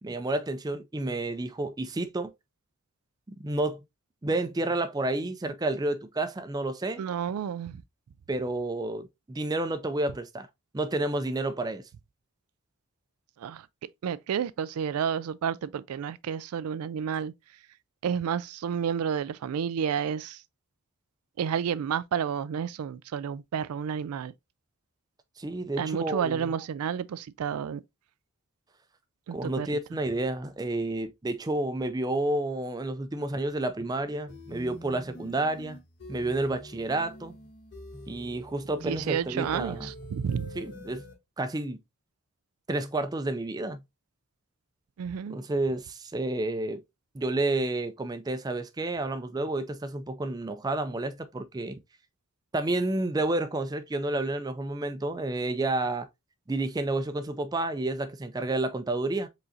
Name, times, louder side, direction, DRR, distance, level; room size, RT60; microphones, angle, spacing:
voice 1, 0.0-2.3 3.3-3.8 4.2-7.0 8.3-10.5 10.7-11.9 25.4-26.5 29.3-35.8 36.1-37.4 38.1-39.9 40.6-41.0 41.4-41.8 42.7-43.8 45.3-46.8 47.1-51.8 52.5-56.1 56.5-59.3, right 2 dB, 20° right, 0.4 m, -30 dB
voice 2, 7.0-7.8 13.4-13.7 14.0-17.3 18.0-20.4 21.4-24.3 25.8-27.8 29.3-29.7 38.8-40.5 45.0-45.4, right 7 dB, 90° right, 0.4 m, -30 dB
sound 1, 34.3-41.1, equal, 50° left, 1.2 m, -45 dB
4.9 x 3.8 x 2.6 m
head